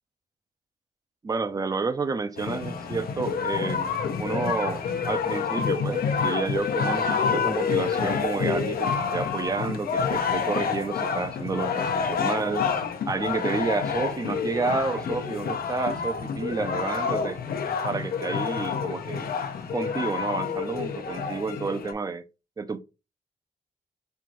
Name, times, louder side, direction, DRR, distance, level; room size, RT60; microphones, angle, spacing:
voice 1, 1.2-12.7 13.1-17.4 17.8-19.3 19.7-22.2 22.6-22.8, right 4 dB, 25° right, 0.4 m, -30 dB
sound 1, 2.4-21.9, left 6 dB, 90° left, 0.7 m, -28 dB
5.5 x 2.5 x 3.0 m
wide cardioid pair, 120°, 15 cm